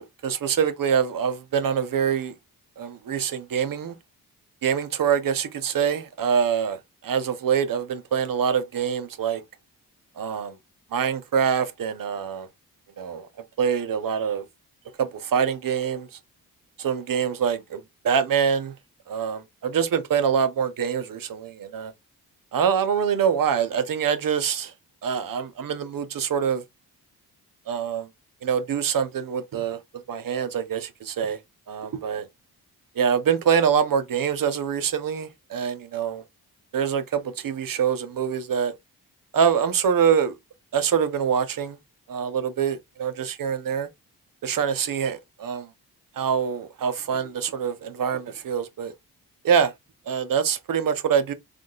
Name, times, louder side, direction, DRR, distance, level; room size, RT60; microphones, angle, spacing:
voice 1, 0.0-2.3 2.8-3.9 4.6-6.8 7.0-9.4 10.2-10.5 10.9-12.5 13.0-13.3 13.6-14.4 15.0-16.1 16.8-18.7 19.1-21.9 22.5-24.7 25.0-26.6 27.7-28.1 28.4-29.8 30.1-31.4 31.7-32.3 33.0-36.2 36.7-38.7 39.3-40.4 40.7-41.8 42.1-43.9 44.4-45.7 46.2-48.9 49.4-49.7 50.1-51.3, right 7 dB, 55° right, 0.6 m, -25 dB
3.6 x 2.3 x 2.3 m
supercardioid pair, 50°, 41 cm